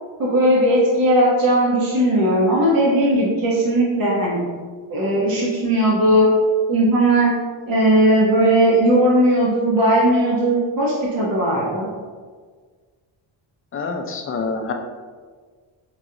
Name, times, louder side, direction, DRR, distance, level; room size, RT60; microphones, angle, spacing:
voice 1, 0.2-4.4 4.9-6.3 6.7-7.4 7.7-11.9, right 1 dB, 45° right, -5 dB, 1.0 m, -17 dB
voice 2, 13.7-14.7, left 4 dB, 30° left, 3 dB, 0.4 m, -26 dB
5.0 x 2.4 x 2.8 m, 1.5 s
cardioid pair, 115°, 47 cm